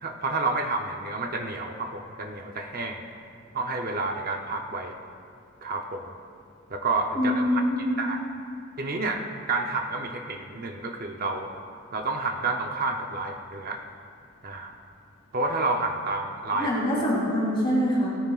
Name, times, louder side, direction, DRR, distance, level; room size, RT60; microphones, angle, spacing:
voice 1, 0.0-3.0 3.5-4.9 5.6-6.0 6.7-7.6 8.0-8.2 8.8-11.5 11.9-13.8 14.4-14.8 15.3-16.7, right 3 dB, 40° right, 3 dB, 0.7 m, -29 dB
voice 2, 7.1-8.0 16.5-18.1, equal, 25° left, -7 dB, 3.2 m, -24 dB
17.5 x 13.0 x 2.4 m, 2.4 s
head